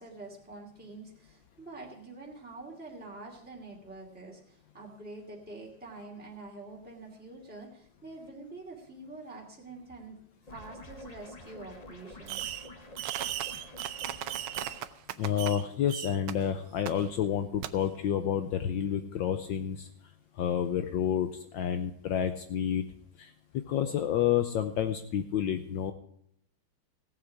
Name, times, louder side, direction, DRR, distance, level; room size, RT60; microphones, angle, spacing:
voice 1, 0.0-10.2 10.5-12.6, right 2 dB, 5° right, -3 dB, 2.3 m, -46 dB
sound 1, 10.5-14.9, left 2 dB, 30° left, 0.7 m, -48 dB
Fireworks, 12.3-12.7 13.0-15.6 15.9-16.3 16.9-17.0 17.6-17.7, right 12 dB, 75° right, 1.4 m, -36 dB
voice 2, 15.2-19.9 20.4-22.8 23.2-25.9, left 9 dB, 70° left, 8 dB, 1.3 m, -29 dB
16.5 x 7.5 x 4.7 m, 0.72 s
omnidirectional pair, 2.4 m